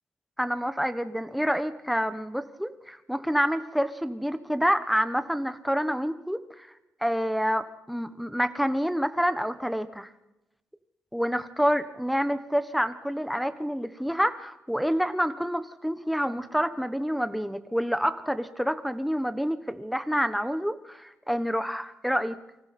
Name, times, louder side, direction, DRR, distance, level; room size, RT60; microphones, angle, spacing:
voice 1, 0.4-6.7 7.0-10.1 11.1-22.4, equal, ahead, 10 dB, 1.2 m, -28 dB
28.0 x 25.0 x 4.4 m, 0.94 s
wide cardioid pair, 130°, 5 cm